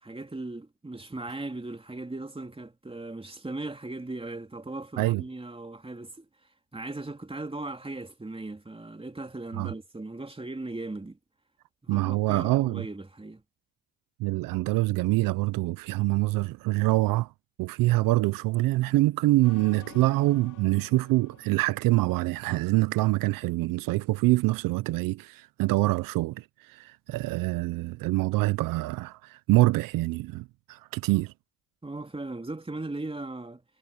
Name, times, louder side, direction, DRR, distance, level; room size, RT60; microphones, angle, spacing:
voice 1, 0.0-6.3 6.7-11.2 11.8-13.4 31.8-33.6, right 2 dB, 15° right, 3.3 m, -38 dB
voice 2, 11.9-12.8 14.2-17.3 17.6-31.3, right 19 dB, 85° right, 0.6 m, -25 dB
sound 1, 19.4-22.8, left 10 dB, 65° left, 2.7 m, -51 dB
supercardioid pair, 65°, 33 cm